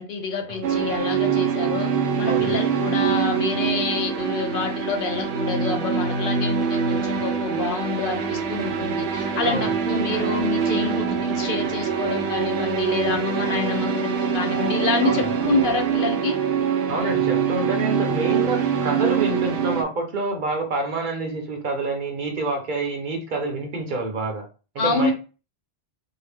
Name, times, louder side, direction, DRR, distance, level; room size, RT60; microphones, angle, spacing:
voice 1, 0.0-1.9 2.2-16.4 24.8-25.1, left 4 dB, 60° left, 4 dB, 0.7 m, -27 dB
sound 1, 0.6-19.8, right 7 dB, 85° right, 0.9 m, -24 dB
voice 2, 2.2-2.5 9.4-9.7 15.0-15.3 16.9-24.4 24.8-25.1, right 2 dB, 50° right, 3 dB, 0.8 m, -27 dB
2.7 x 2.1 x 3.3 m, 0.34 s
omnidirectional pair, 1.2 m